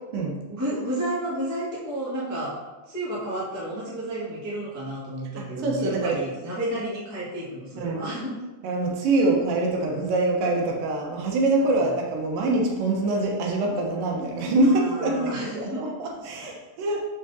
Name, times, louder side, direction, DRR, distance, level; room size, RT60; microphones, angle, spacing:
voice 1, 0.5-2.6 2.9-8.3 11.7-11.8 14.6-15.8 16.4-16.5, right 1 dB, 25° right, -8 dB, 0.3 m, -31 dB
voice 2, 5.4-6.2 7.8-8.1 8.6-17.0, right 2 dB, 75° right, -1 dB, 2.6 m, -24 dB
6.4 x 6.1 x 2.7 m, 1.2 s
omnidirectional pair, 4.1 m